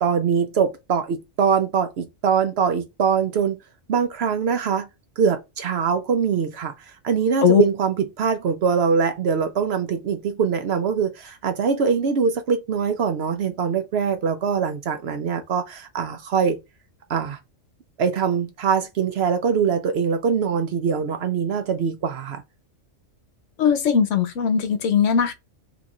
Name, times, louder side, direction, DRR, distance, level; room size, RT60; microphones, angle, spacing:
voice 1, 0.0-3.6 3.9-4.9 5.2-6.7 7.0-16.6 17.1-17.4 18.0-22.4, right 6 dB, 60° right, 0.7 m, -23 dB
voice 2, 23.6-25.3, left 6 dB, 70° left, 1.0 m, -19 dB
2.9 x 2.4 x 4.0 m
omnidirectional pair, 1.4 m